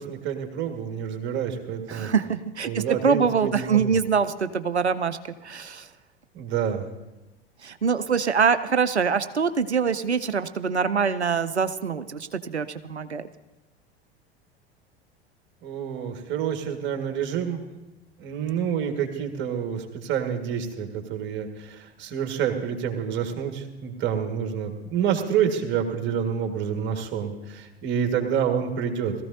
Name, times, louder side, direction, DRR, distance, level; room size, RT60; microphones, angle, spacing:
voice 1, 0.0-2.1 2.6-4.0 6.3-6.8 15.6-17.6 18.2-29.1, right 8 dB, 35° right, 4 dB, 1.9 m, -28 dB
voice 2, 1.9-5.2 5.4-5.9 7.6-13.3, right 6 dB, 85° right, 12 dB, 0.6 m, -24 dB
19.5 x 14.5 x 2.8 m, 1.0 s
figure-of-eight pair, 85°, 32 cm